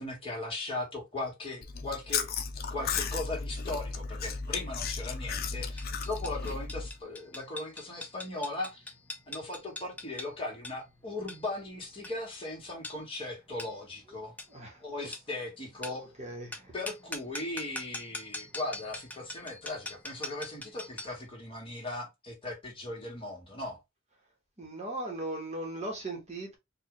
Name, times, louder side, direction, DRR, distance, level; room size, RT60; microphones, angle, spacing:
voice 1, 0.0-2.3 2.7-8.9 9.3-14.3 14.8-16.1 16.7-23.8, left 2 dB, 25° left, 1.7 m, -38 dB
Chewing mastication, 1.6-6.9, left 5 dB, 45° left, 0.6 m, -35 dB
sound 1, 5.8-21.2, left 2 dB, 10° left, 0.7 m, -44 dB
voice 2, 14.5-14.8 16.2-16.7 24.6-26.5, right 2 dB, 30° right, 1.2 m, -38 dB
4.6 x 2.5 x 3.1 m
head